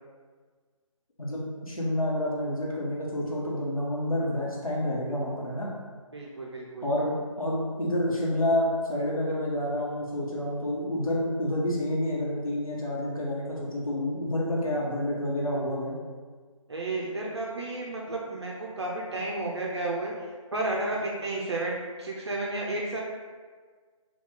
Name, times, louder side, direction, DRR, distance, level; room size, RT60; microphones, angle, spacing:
voice 1, 1.2-5.7 6.8-15.9, left 1 dB, 85° left, -4 dB, 1.0 m, -29 dB
voice 2, 6.1-6.9 16.7-20.1 20.5-23.0, right 2 dB, 50° right, -3 dB, 0.5 m, -32 dB
2.8 x 2.3 x 3.6 m, 1.5 s
figure-of-eight pair, 155°, 18 cm